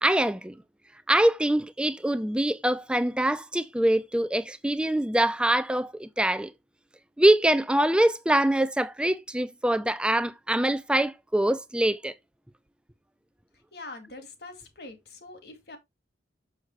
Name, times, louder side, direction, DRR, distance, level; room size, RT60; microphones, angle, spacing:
voice 1, 0.0-0.6 1.1-6.5 7.2-12.1, right 1 dB, 5° right, 0.4 m, -24 dB
voice 2, 13.7-15.8, left 2 dB, 60° left, 2.1 m, -44 dB
6.5 x 6.4 x 3.3 m
head